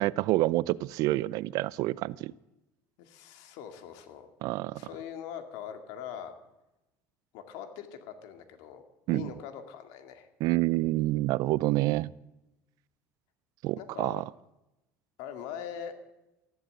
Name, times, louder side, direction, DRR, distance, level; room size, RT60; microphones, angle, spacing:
voice 1, 0.0-2.3 4.4-4.8 9.1-9.3 10.4-12.1 13.6-14.2, right 18 dB, 60° right, 21 dB, 0.4 m, -27 dB
voice 2, 3.0-4.3 4.7-6.3 7.3-8.8 9.1-10.3 13.8-14.2 15.2-15.9, left 9 dB, 75° left, 7 dB, 2.3 m, -42 dB
14.0 x 12.0 x 7.9 m, 0.96 s
cardioid pair, 140°, 7 cm